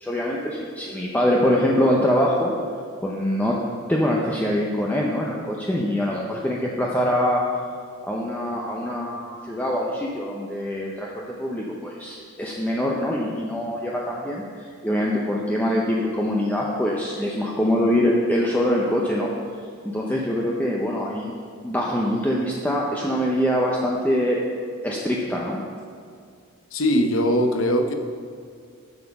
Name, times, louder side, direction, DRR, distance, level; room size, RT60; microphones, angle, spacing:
voice 1, 0.0-2.5 3.0-3.6 3.9-7.4 8.1-14.4 14.8-19.3 19.8-21.3 21.6-24.4 24.8-25.6, equal, 10° left, -3 dB, 0.7 m, -24 dB
voice 2, 26.7-27.9, equal, 65° left, 7 dB, 0.8 m, -20 dB
7.9 x 7.4 x 5.8 m, 2.2 s
head